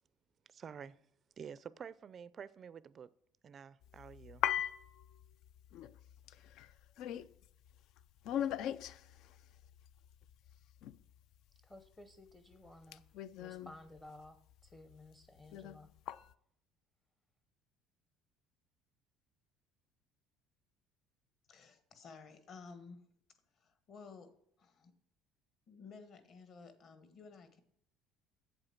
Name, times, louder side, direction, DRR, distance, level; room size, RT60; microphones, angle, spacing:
voice 1, 0.5-1.1 1.4-3.1 3.4-4.7, right 7 dB, 30° right, 0.4 m, -50 dB
sound 1, 3.8-11.4 11.9-15.0 15.2-16.3, left 11 dB, 60° left, 0.4 m, -41 dB
voice 2, 11.6-13.0 13.4-14.4 14.6-15.9, left 1 dB, 10° left, 0.7 m, -55 dB
voice 3, 21.5-23.1 23.5-24.3 24.6-24.9 25.7-27.6, left 5 dB, 40° left, 1.4 m, -54 dB
8.1 x 8.0 x 5.7 m
cardioid pair, 150°, 0 cm